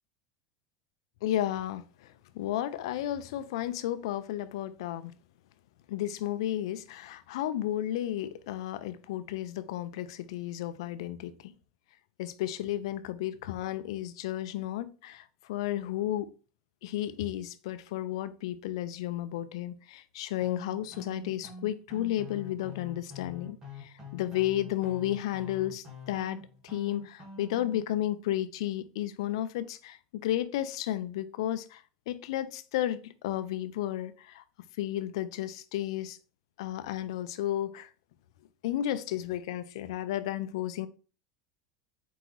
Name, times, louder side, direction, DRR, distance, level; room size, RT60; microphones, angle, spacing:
voice 1, 1.2-5.1 5.9-11.5 12.2-16.3 16.8-34.4 34.8-36.2 36.6-37.9 38.6-40.9, left 12 dB, 80° left, 0.4 m, -33 dB
sound 1, 20.4-27.8, left 3 dB, 25° right, 1.3 m, -45 dB
4.6 x 3.0 x 3.9 m
supercardioid pair, 160°, 3 cm